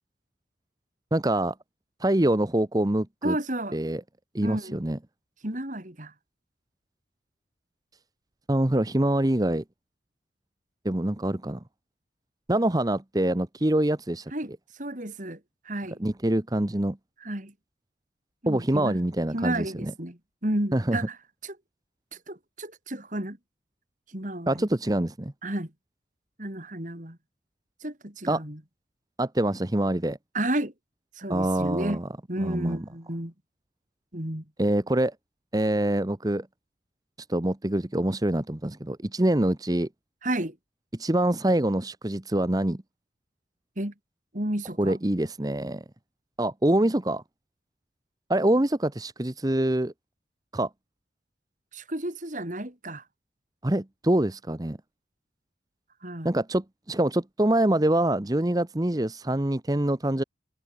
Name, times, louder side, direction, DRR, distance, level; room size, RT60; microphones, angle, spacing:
voice 1, 1.1-1.5 2.0-3.4 3.7-4.0 4.3-5.0 8.5-9.6 10.8-11.6 12.5-14.3 16.0-17.0 18.5-19.9 20.7-21.0 24.5-25.3 28.3-28.4 29.2-30.2 31.3-32.1 32.4-32.8 34.6-35.1 35.5-36.5 37.3-39.9 40.9-42.8 44.8-45.8 46.4-47.2 48.3-49.9 50.5-50.7 53.6-54.8 56.2-60.2, right 1 dB, 20° right, 0.9 m, -25 dB
voice 2, 3.2-3.8 4.4-4.8 5.4-6.1 14.3-14.5 14.8-15.4 15.7-16.0 17.2-17.5 18.4-19.0 19.3-21.2 21.4-21.6 22.1-23.4 24.1-24.7 25.4-25.7 26.4-27.2 27.8-28.6 30.3-30.7 31.2-32.0 32.3-33.3 34.1-34.4 40.2-40.6 43.8-43.9 44.3-45.0 51.7-53.0 56.0-56.3, right 1 dB, 40° right, 3.4 m, -32 dB
head